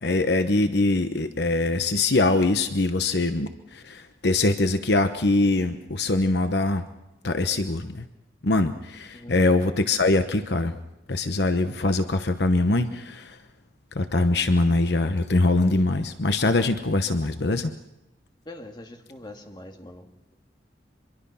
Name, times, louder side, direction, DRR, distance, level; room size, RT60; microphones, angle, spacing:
voice 1, 0.0-6.8 7.2-8.0 8.4-10.7 11.1-13.4 13.9-17.7, left 2 dB, 65° left, 9 dB, 1.0 m, -23 dB
voice 2, 18.5-20.1, left 1 dB, 25° left, 4 dB, 2.0 m, -43 dB
25.0 x 23.0 x 5.7 m, 0.93 s
head